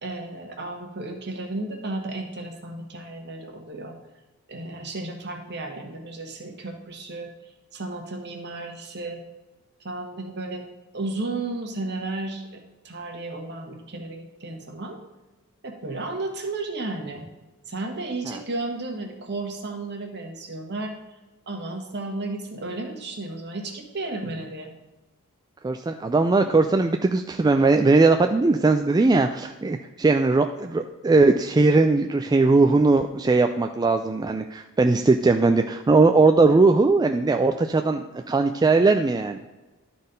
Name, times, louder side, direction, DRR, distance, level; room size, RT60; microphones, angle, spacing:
voice 1, 0.0-3.9 4.5-7.3 7.7-9.2 9.8-10.6 10.9-15.0 15.6-17.3 17.7-20.9 21.5-24.7, right 2 dB, 50° right, 3 dB, 1.4 m, -33 dB
voice 2, 25.6-39.4, right 3 dB, 20° right, 6 dB, 0.3 m, -19 dB
11.5 x 4.2 x 5.2 m, 1.1 s
head